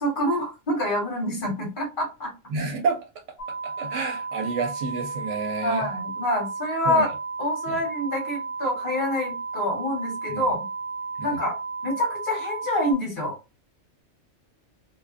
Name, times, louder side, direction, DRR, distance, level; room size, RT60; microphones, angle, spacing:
voice 1, 0.0-2.3 5.6-7.1 7.4-10.6 11.2-11.5 11.8-13.4, left 1 dB, 45° left, 1.2 m, -26 dB
voice 2, 2.5-3.0 3.6-5.9 6.9-7.1 7.7-7.8 10.3-10.5 11.2-11.4, right 4 dB, 70° right, 0.9 m, -29 dB
sound 1, 3.4-12.9, right 4 dB, 80° left, 0.9 m, -33 dB
2.4 x 2.3 x 2.4 m
omnidirectional pair, 1.3 m